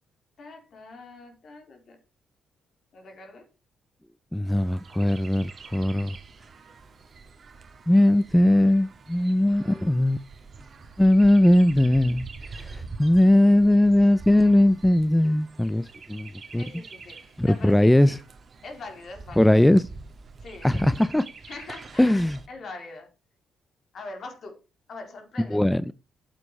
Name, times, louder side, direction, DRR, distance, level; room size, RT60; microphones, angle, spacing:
voice 1, 0.4-2.0 2.9-3.5 5.8-5.9 9.5-9.8 16.5-18.2 18.6-19.6 20.4-20.9 21.4-23.1 23.9-24.6 24.9-25.7, left 3 dB, 55° left, 3.8 m, -43 dB
voice 2, 4.3-6.2 7.9-10.2 11.0-16.7 17.4-18.2 19.4-19.9 20.6-21.3 22.0-22.4 25.5-25.8, left 1 dB, 5° left, 0.4 m, -20 dB
Chirp tweet, 4.4-22.5, right 4 dB, 40° right, 1.9 m, -45 dB
9.5 x 7.6 x 4.7 m
cardioid pair, 90°, 0 cm